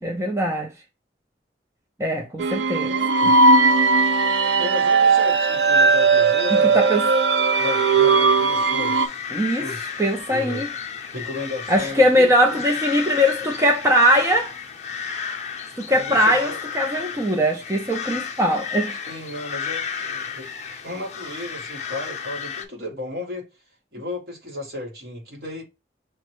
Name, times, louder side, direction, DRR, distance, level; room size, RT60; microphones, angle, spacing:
voice 1, 0.0-0.7 2.0-2.9 4.3-4.6 6.5-7.0 9.3-9.6 10.0-10.7 11.7-14.5 15.8-19.0, equal, 15° right, 0.5 m, -21 dB
sound 1, 2.4-9.1, right 4 dB, 80° right, 0.4 m, -18 dB
voice 2, 2.9-3.3 4.6-6.8 7.6-10.0 10.3-10.6 11.1-12.6 15.9-16.6 19.1-20.5 20.8-23.5 23.9-25.6, left 2 dB, 60° right, 1.4 m, -34 dB
sound 2, 7.5-22.6, left 7 dB, 40° left, 0.6 m, -33 dB
6.2 x 2.1 x 3.0 m
head